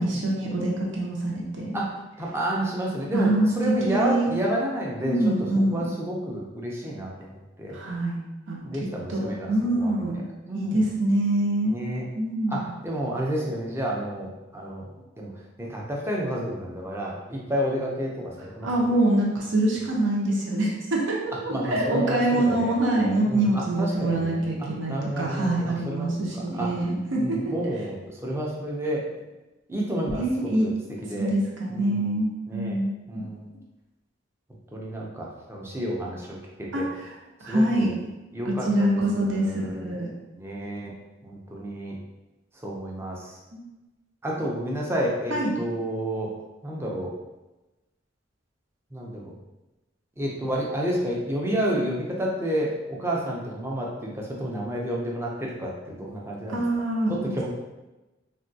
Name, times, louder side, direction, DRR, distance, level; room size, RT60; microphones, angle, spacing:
voice 1, 0.0-1.7 3.1-4.3 5.0-5.9 7.7-8.2 8.5-8.6 9.1-10.2 10.5-11.7 12.1-12.7 18.6-27.7 30.1-30.7 31.2-32.9 36.7-37.1 37.4-38.0 38.4-40.1 43.5-43.6 45.3-45.5 56.5-57.1, right 1 dB, 75° right, -3 dB, 0.7 m, -25 dB
voice 2, 1.7-5.3 5.7-7.3 7.6-7.8 8.6-10.0 10.5-10.9 11.7-12.1 12.5-14.8 15.2-15.3 15.6-18.9 21.5-22.7 23.3-24.4 24.9-26.7 27.2-29.1 29.7-30.7 31.0-31.3 31.7-32.1 32.5-32.8 33.1-33.5 34.7-36.9 37.5-37.9 38.3-39.9 40.4-40.9 41.2-42.0 42.6-43.4 44.2-46.3 46.6-47.1 48.9-49.3 50.2-56.6 57.1-57.5, right 1 dB, 15° right, -3 dB, 0.5 m, -30 dB
3.5 x 2.2 x 2.7 m, 1.1 s
head